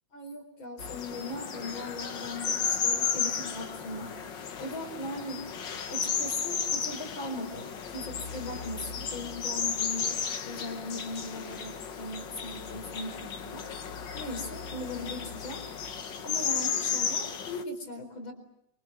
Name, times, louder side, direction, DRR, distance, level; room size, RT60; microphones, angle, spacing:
voice 1, 0.1-4.1 4.6-5.5 5.9-13.7 14.1-15.6 16.2-18.3, left 1 dB, 80° left, 5 dB, 5.2 m, -39 dB
sound 1, 0.8-17.6, left 6 dB, 65° left, 2.0 m, -34 dB
28.0 x 24.5 x 7.6 m, 0.74 s
omnidirectional pair, 2.1 m